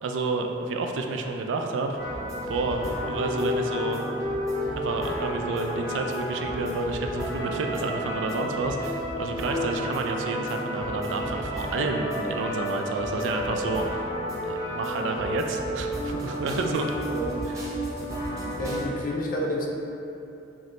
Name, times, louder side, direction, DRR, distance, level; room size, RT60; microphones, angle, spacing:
voice 1, 0.0-2.0 2.5-4.0 4.7-14.1 14.5-16.9 17.5-17.6, right 3 dB, 75° right, 3 dB, 0.3 m, -30 dB
sound 1, 2.0-18.8, equal, 15° right, 0.7 m, -31 dB
voice 2, 17.1-17.4 18.4-19.7, left 1 dB, 45° left, -2 dB, 0.5 m, -30 dB
5.8 x 2.0 x 2.5 m, 2.8 s
head